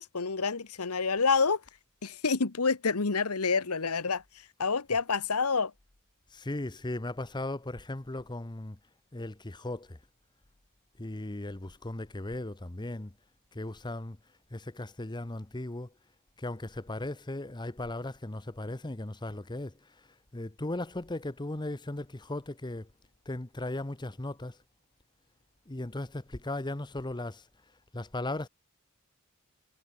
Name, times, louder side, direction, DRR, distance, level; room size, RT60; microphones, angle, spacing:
voice 1, 0.0-1.6 2.0-5.7, left 4 dB, 90° left, 1.3 m, -28 dB
voice 2, 6.3-8.8 9.1-10.0 11.0-13.1 13.5-14.2 14.5-15.9 16.4-19.9 20.3-22.9 23.3-24.6 25.7-27.4 27.9-28.5, left 2 dB, 20° left, 0.9 m, -37 dB
head